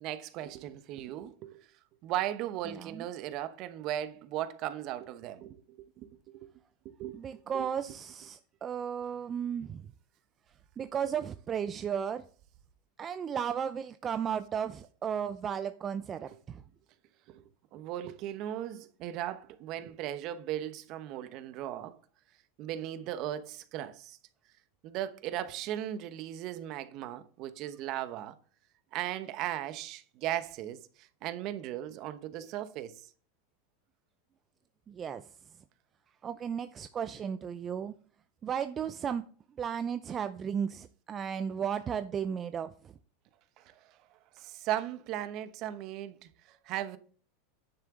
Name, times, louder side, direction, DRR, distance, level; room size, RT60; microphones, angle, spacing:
voice 1, 0.0-1.7 2.0-5.5 6.0-6.5 6.8-7.2 7.5-7.7 17.3-17.4 17.7-22.0 22.6-24.2 24.8-28.4 28.9-33.1 43.6-44.0 44.4-47.0, right 12 dB, 50° right, 1.0 m, -37 dB
voice 2, 2.6-3.1 7.1-9.8 10.8-12.2 13.0-16.6 34.9-35.2 36.2-37.9 38.4-39.3 39.6-42.9, right 8 dB, 30° right, 0.5 m, -34 dB
10.0 x 6.9 x 3.8 m
hypercardioid pair, 105°, 0 cm